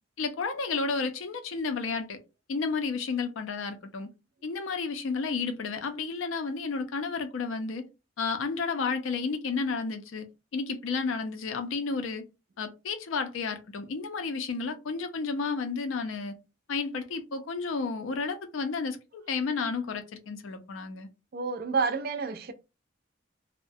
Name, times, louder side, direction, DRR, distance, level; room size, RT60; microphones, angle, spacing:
voice 1, 0.2-2.2 2.5-4.1 4.4-7.8 8.2-10.3 10.5-12.2 12.6-16.3 16.7-21.1, left 4 dB, 85° left, 0.4 m, -32 dB
voice 2, 21.3-22.5, right 4 dB, 50° right, 0.4 m, -29 dB
2.3 x 2.1 x 2.6 m
head